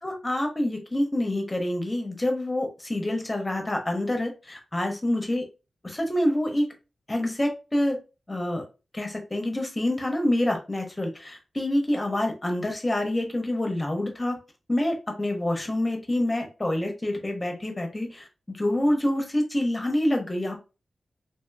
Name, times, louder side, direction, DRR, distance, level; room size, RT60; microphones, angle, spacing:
voice 1, 0.0-5.4 5.8-6.7 7.1-8.0 8.3-8.6 8.9-14.4 14.7-20.6, left 1 dB, 25° left, 3 dB, 0.9 m, -27 dB
2.9 x 2.8 x 2.4 m, 0.31 s
cardioid pair, 65°, 0 cm